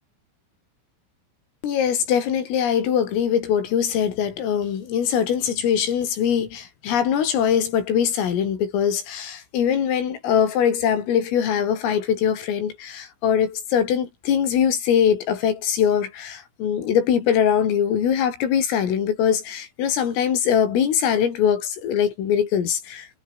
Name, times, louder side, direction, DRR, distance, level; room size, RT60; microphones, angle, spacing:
voice 1, 1.6-23.1, left 8 dB, 90° left, 6.5 m, -22 dB
omnidirectional pair, 5.7 m